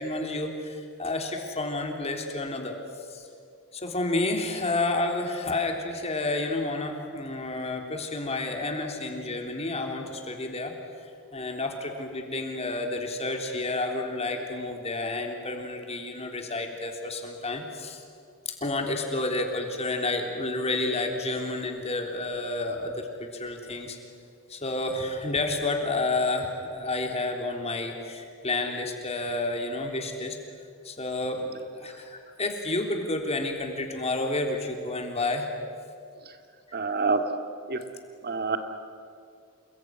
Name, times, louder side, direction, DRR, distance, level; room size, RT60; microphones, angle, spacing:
voice 1, 0.0-2.8 3.1-3.2 3.7-10.7 11.3-18.0 18.5-24.0 24.5-30.4 30.8-35.5 36.7-36.9, left 2 dB, 30° left, 3 dB, 3.5 m, -30 dB
voice 2, 36.7-37.3 37.7-37.8 38.2-38.6, right 4 dB, 45° right, 7 dB, 2.3 m, -26 dB
29.0 x 21.0 x 9.6 m, 2.3 s
head